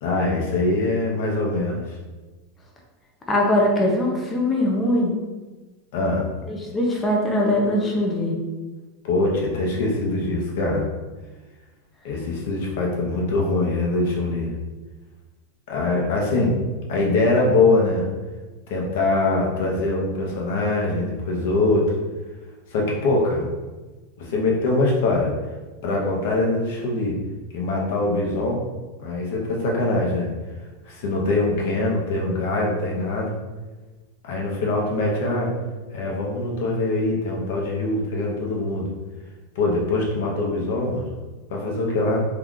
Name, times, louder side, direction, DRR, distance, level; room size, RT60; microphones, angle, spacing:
voice 1, 0.0-1.9 5.9-6.3 9.0-10.8 12.0-14.5 15.7-16.6 16.9-18.1 18.7-21.9 22.7-23.4 24.2-25.3 25.8-27.2 27.5-28.6 29.0-30.3 30.8-33.3 34.2-35.5 35.9-38.9 39.5-41.1 41.5-42.2, left 2 dB, 55° left, -1 dB, 0.8 m, -23 dB
voice 2, 3.3-5.2 6.5-8.3, left 1 dB, 10° left, -2 dB, 0.4 m, -21 dB
2.8 x 2.4 x 3.6 m, 1.2 s
supercardioid pair, 175°, 0 cm